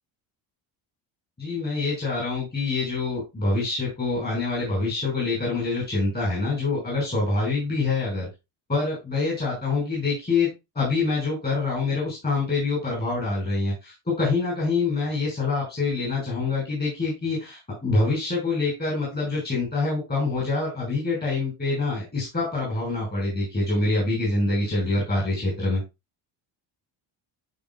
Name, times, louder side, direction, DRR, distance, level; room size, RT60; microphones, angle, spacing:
voice 1, 1.4-8.3 8.7-25.8, left 3 dB, 20° left, -5 dB, 5.9 m, -25 dB
13.0 x 5.4 x 2.5 m, 0.24 s
cardioid pair, 155°, 44 cm